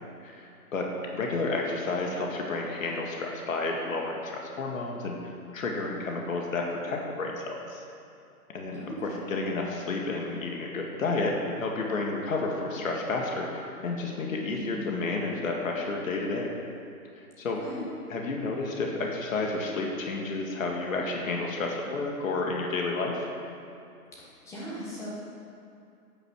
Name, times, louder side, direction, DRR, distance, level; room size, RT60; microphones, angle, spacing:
voice 1, 0.2-5.2 5.5-7.8 8.5-16.5 17.2-17.6 18.1-23.2, left 3 dB, 55° left, 0 dB, 2.2 m, -31 dB
voice 2, 8.7-9.4 14.4-15.0 17.5-17.9 24.2-25.1, equal, 5° left, -6 dB, 1.2 m, -39 dB
11.0 x 9.3 x 6.5 m, 2.5 s
hypercardioid pair, 155°, 47 cm